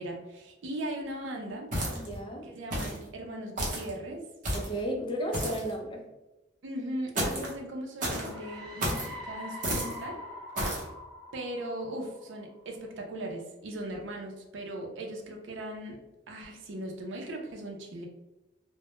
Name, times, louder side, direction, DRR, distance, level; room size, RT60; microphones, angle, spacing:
voice 1, 0.0-1.7 2.4-4.2 6.6-10.2 11.3-16.0 16.3-18.1, right 1 dB, 80° right, 1 dB, 0.5 m, -38 dB
voice 2, 1.3-2.5 4.5-6.1, right 1 dB, 25° left, 1 dB, 0.4 m, -35 dB
sound 1, 1.7-2.2 2.7-3.0 3.6-3.9 4.4-4.8 5.3-5.7 7.1-7.5 8.0-8.3 8.8-9.1 9.6-10.0 10.5-10.8, right 1 dB, 45° right, 0.7 m, -31 dB
sound 2, 8.1-12.6, left 1 dB, 20° right, 0.9 m, -44 dB
2.1 x 2.0 x 2.9 m, 0.99 s
head